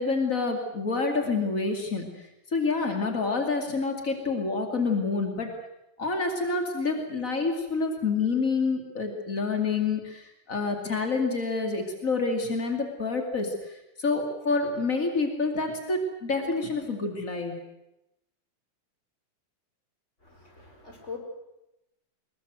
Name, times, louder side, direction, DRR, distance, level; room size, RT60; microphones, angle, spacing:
voice 1, 0.0-5.5 6.0-17.5, left 4 dB, 65° left, 3 dB, 0.8 m, -28 dB
voice 2, 20.2-21.2, left 5 dB, 15° left, 2 dB, 4.3 m, -42 dB
22.5 x 21.0 x 8.0 m, 0.90 s
omnidirectional pair, 6.0 m